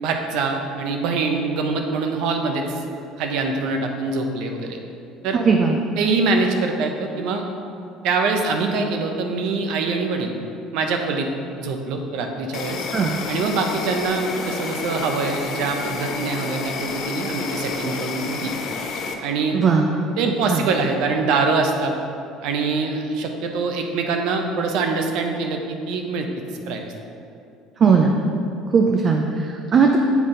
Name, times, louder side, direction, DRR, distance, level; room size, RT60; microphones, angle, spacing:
voice 1, 0.0-2.8 3.2-4.8 5.2-5.4 6.0-7.4 8.0-10.3 10.7-11.3 11.6-12.9 13.3-18.6 19.2-19.6 20.2-21.9 22.4-26.3 26.7-26.9, right 4 dB, 70° right, 4 dB, 0.7 m, -24 dB
voice 2, 5.3-5.8 12.9-13.2 19.5-19.9 20.5-20.7 27.8-28.2 28.7-30.0, right 5 dB, 40° right, 2 dB, 0.5 m, -18 dB
Insect, 12.5-19.1, left 4 dB, 55° left, 0.6 m, -30 dB
8.2 x 3.9 x 3.8 m, 2.5 s
cardioid pair, 115°, 0 cm